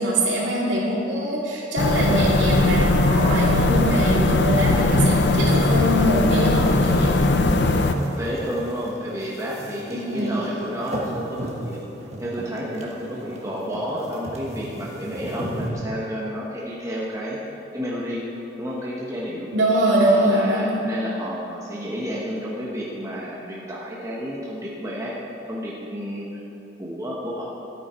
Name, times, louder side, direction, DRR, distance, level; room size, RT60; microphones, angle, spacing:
voice 1, 0.0-7.1 9.9-10.3 19.5-20.8, right 1 dB, 65° right, -5 dB, 2.5 m, -22 dB
sound 1, 1.8-7.9, left 2 dB, 55° left, 0.6 m, -19 dB
sound 2, 6.6-15.7, right 1 dB, 35° right, 1.5 m, -36 dB
voice 2, 7.3-11.8 12.2-17.4 17.7-18.2 18.6-19.5 20.0-25.2 25.5-26.3 26.8-27.5, equal, 15° right, -5 dB, 1.2 m, -31 dB
14.0 x 8.9 x 4.5 m, 2.9 s
head